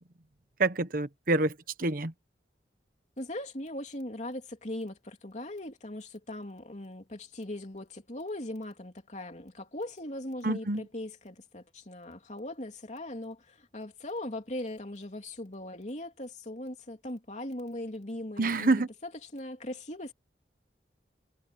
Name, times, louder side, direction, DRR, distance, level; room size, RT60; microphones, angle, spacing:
voice 1, 0.6-2.1 10.4-10.8 18.4-18.9, right 2 dB, 55° right, 1.1 m, -27 dB
voice 2, 3.2-20.1, left 1 dB, 40° left, 3.2 m, -39 dB
head